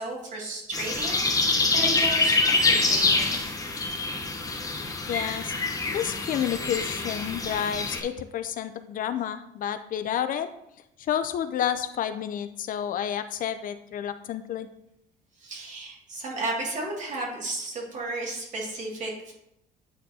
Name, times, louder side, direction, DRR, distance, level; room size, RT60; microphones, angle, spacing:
voice 1, 0.0-3.4 15.4-19.3, right 2 dB, 45° right, -3 dB, 2.3 m, -34 dB
sound 1, 0.7-8.0, left 3 dB, 20° left, 0.9 m, -25 dB
voice 2, 5.1-5.5 5.9-10.5 11.1-14.7, left 9 dB, 55° left, 11 dB, 0.4 m, -30 dB
8.9 x 4.3 x 2.8 m, 0.83 s
cardioid pair, 110°, 17 cm